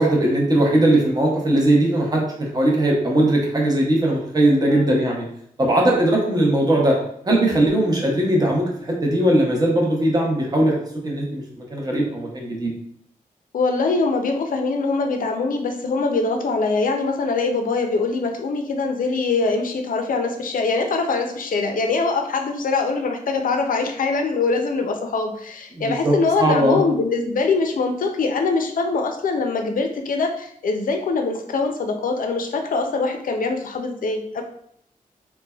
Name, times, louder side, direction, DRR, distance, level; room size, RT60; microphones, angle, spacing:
voice 1, 0.0-5.2 5.6-7.0 7.3-12.7 25.8-26.8, right 1 dB, 25° right, -2 dB, 0.7 m, -19 dB
voice 2, 4.7-5.0 13.5-34.4, left 3 dB, 70° left, 4 dB, 0.4 m, -23 dB
3.1 x 2.1 x 2.2 m, 0.69 s
wide cardioid pair, 115°, 15 cm